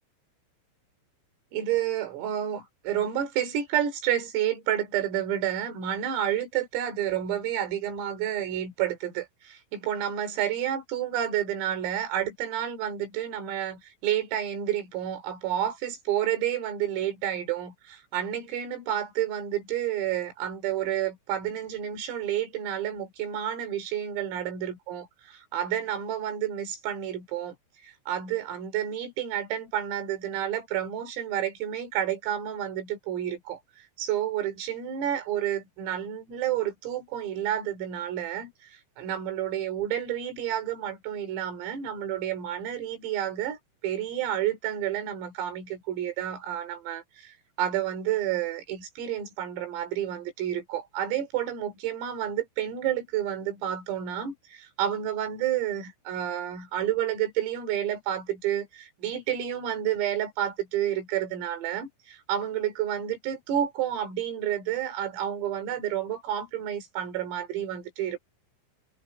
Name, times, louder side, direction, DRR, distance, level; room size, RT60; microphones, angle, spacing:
voice 1, 1.5-27.5 27.8-68.2, right 11 dB, 85° right, 6.4 m, -30 dB
omnidirectional pair, 5.8 m